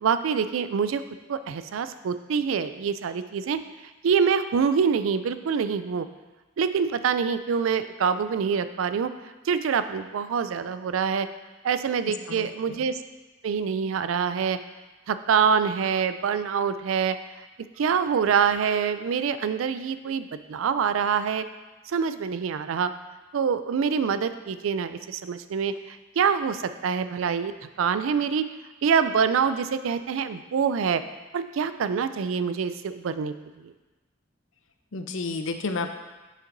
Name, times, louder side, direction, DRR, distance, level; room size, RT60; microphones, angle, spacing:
voice 1, 0.0-1.0 1.3-3.6 4.0-6.1 6.6-9.1 9.5-11.3 11.6-13.0 13.4-14.6 15.1-17.2 17.8-21.4 21.9-22.9 23.3-27.5 27.8-28.4 28.8-31.0 31.3-33.7, right 6 dB, 90° right, 12 dB, 0.4 m, -25 dB
voice 2, 12.0-12.9 34.9-35.9, left 3 dB, 80° left, 7 dB, 0.6 m, -32 dB
7.3 x 6.6 x 2.6 m, 1.2 s
head